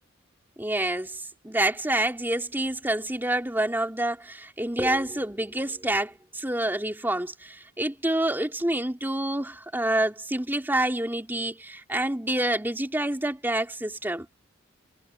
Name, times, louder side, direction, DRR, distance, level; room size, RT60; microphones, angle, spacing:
voice 1, 0.6-14.3, right 1 dB, 10° right, 3.0 m, -27 dB
head